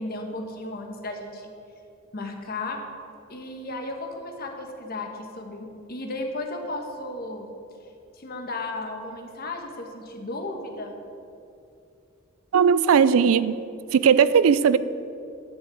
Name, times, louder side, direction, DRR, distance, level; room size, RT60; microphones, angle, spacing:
voice 1, 0.0-1.5 2.1-2.8 3.3-7.5 8.1-11.0, left 2 dB, 45° left, 3 dB, 1.3 m, -34 dB
voice 2, 12.5-13.5 13.9-14.8, right 7 dB, 85° right, 16 dB, 0.4 m, -18 dB
11.0 x 5.4 x 8.3 m, 2.6 s
head